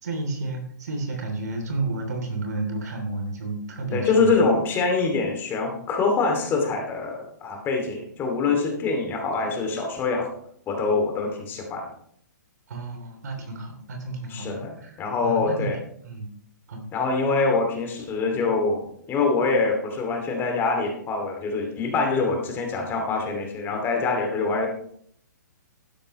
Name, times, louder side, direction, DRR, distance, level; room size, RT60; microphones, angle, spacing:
voice 1, 0.0-4.3 12.7-15.0 15.2-15.7 16.0-16.3 16.7-16.8, right 2 dB, 60° right, 4 dB, 3.3 m, -31 dB
voice 2, 3.9-10.3 10.7-11.8 14.3-15.8 16.9-24.7, left 4 dB, 20° left, 2 dB, 2.6 m, -24 dB
12.5 x 11.0 x 3.2 m, 0.65 s
figure-of-eight pair, 125°, 10 cm